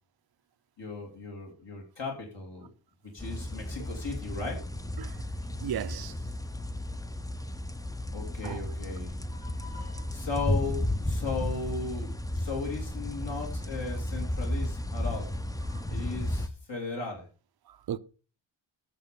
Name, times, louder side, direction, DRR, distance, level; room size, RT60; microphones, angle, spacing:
voice 1, 0.8-2.7 3.1-4.6 8.1-15.3 15.9-17.3, left 4 dB, 60° left, 2.8 m, -37 dB
sound 1, 3.2-16.5, left 1 dB, 10° left, 0.5 m, -33 dB
voice 2, 5.6-6.3 8.4-8.6 9.7-9.8 15.7-15.8 17.7-18.0, right 10 dB, 50° right, 0.6 m, -36 dB
8.9 x 7.2 x 5.2 m
wide cardioid pair, 115°, 48 cm